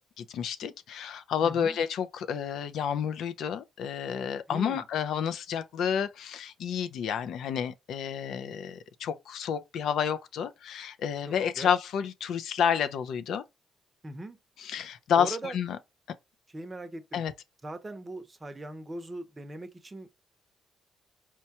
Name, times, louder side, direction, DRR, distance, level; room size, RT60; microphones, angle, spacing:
voice 1, 0.2-13.4 14.6-15.8 17.1-17.3, left 8 dB, 75° left, 0.4 m, -30 dB
voice 2, 1.4-1.8 4.5-4.8 11.3-11.7 14.0-14.4 15.2-15.6 16.5-17.2 17.6-20.2, right 2 dB, 20° right, 0.7 m, -40 dB
4.3 x 2.2 x 2.8 m
cardioid pair, 90°, 0 cm